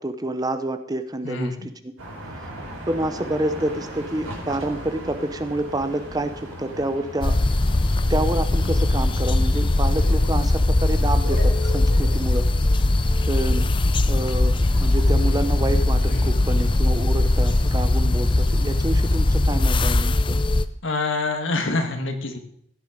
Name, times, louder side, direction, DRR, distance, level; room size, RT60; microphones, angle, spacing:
voice 1, 0.0-1.9 2.3-2.4 2.9-7.4 8.1-12.5 12.8-12.9 13.2-13.7 14.1-20.4, right 1 dB, 20° right, 10 dB, 0.7 m, -28 dB
voice 2, 1.2-1.7 20.8-22.4, left 3 dB, 70° left, 5 dB, 1.9 m, -26 dB
sound 1, 2.0-19.7, equal, 80° right, 4.5 m, -39 dB
sound 2, 7.2-20.7, left 2 dB, 25° left, 0.5 m, -20 dB
16.0 x 9.9 x 5.1 m, 0.67 s
head